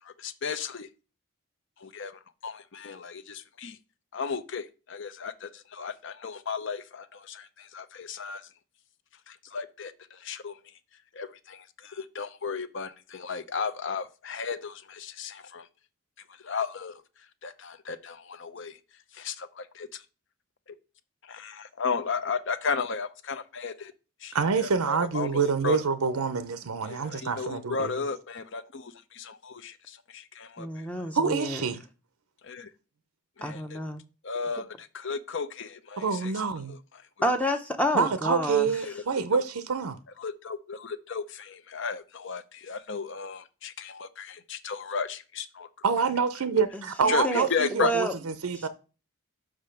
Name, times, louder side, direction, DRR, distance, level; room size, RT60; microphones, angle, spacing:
voice 1, 0.0-0.9 1.8-3.8 4.1-8.5 9.3-10.8 11.1-15.7 16.3-20.0 20.7-20.8 21.2-23.9 24.2-25.8 26.9-31.1 32.4-32.7 33.4-33.8 34.2-36.4 36.7-37.0 38.7-39.0 39.3-39.4 40.2-45.7 47.1-47.9, left 5 dB, 55° left, 0.6 m, -35 dB
voice 2, 24.3-28.0 31.1-31.8 36.0-36.7 37.9-40.0 45.8-48.7, right 5 dB, 80° right, 0.6 m, -27 dB
voice 3, 30.6-31.6 33.4-34.0 37.2-38.7 47.0-47.5 47.8-48.1, equal, 5° left, 0.6 m, -29 dB
6.0 x 5.0 x 5.7 m
head